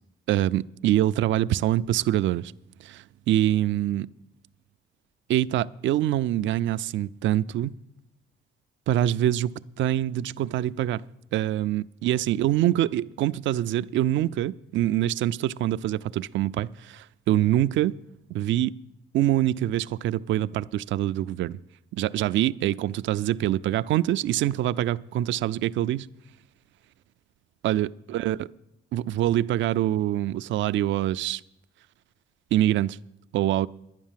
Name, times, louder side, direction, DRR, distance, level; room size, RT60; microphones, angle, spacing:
voice 1, 0.3-2.5 2.8-4.1 5.3-7.7 8.9-11.0 11.3-17.9 18.3-18.7 19.1-21.6 21.9-26.1 27.6-28.4 28.9-31.4 32.5-33.0 33.3-33.7, right 13 dB, 70° right, 0.4 m, -25 dB
11.5 x 9.4 x 7.4 m
cardioid pair, 90°, 20 cm